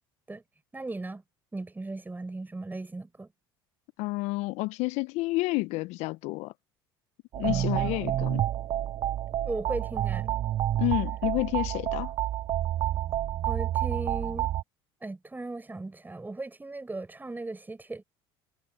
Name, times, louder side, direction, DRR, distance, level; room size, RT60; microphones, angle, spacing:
voice 1, 0.7-1.2 1.5-3.3 7.4-8.1 9.4-10.4 13.5-14.5 15.0-18.0, right 2 dB, 15° right, 6.1 m, -37 dB
voice 2, 4.0-6.5 7.4-8.4 10.8-12.1, left 22 dB, 65° left, 0.9 m, -30 dB
sound 1, 7.3-14.6, right 12 dB, 45° right, 0.4 m, -29 dB
hypercardioid pair, 70°, 12 cm